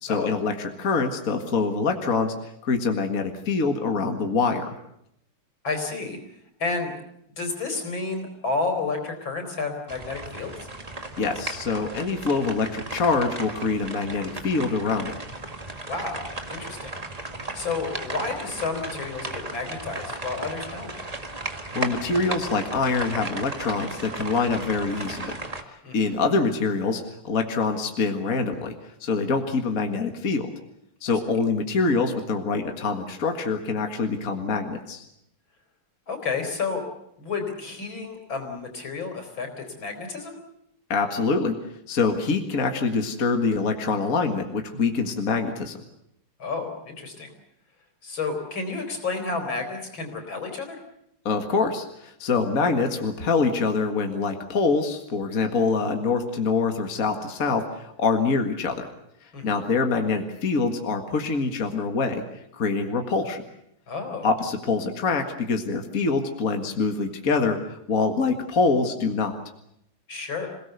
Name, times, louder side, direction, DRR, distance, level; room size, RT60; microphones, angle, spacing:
voice 1, 0.0-4.7 11.2-15.1 21.8-25.3 25.9-28.7 29.0-30.5 31.0-35.0 40.9-41.6 41.9-45.8 51.3-58.9 59.4-62.2 62.5-63.4 64.2-69.4, left 4 dB, 40° left, 5 dB, 2.1 m, -25 dB
voice 2, 5.6-6.2 6.6-6.9 7.4-10.5 15.9-16.2 16.5-16.9 17.5-20.9 25.8-26.2 36.1-36.8 37.2-40.4 46.4-47.3 48.0-50.8 59.3-59.6 63.9-64.3 70.1-70.5, left 4 dB, 65° left, 5 dB, 5.0 m, -31 dB
sound 1, 9.9-25.6, right 2 dB, 20° right, 1.6 m, -35 dB
27.0 x 18.0 x 8.1 m, 0.76 s
omnidirectional pair, 2.3 m